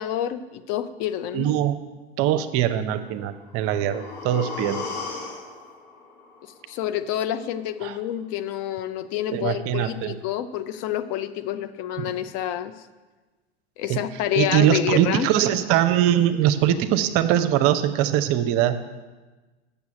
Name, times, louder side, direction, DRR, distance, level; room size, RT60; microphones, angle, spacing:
voice 1, 0.0-1.5 6.7-12.7 13.8-15.3, left 11 dB, 50° left, 12 dB, 0.7 m, -28 dB
voice 2, 1.3-1.8 2.2-4.9 7.8-8.0 9.3-10.2 12.0-12.1 13.9-14.0 14.3-18.8, right 11 dB, 45° right, 10 dB, 0.7 m, -22 dB
sound 1, 3.3-7.3 7.7-7.8, left 4 dB, 70° left, 1.9 m, -37 dB
7.0 x 6.9 x 7.6 m, 1.2 s
hypercardioid pair, 90°, 33 cm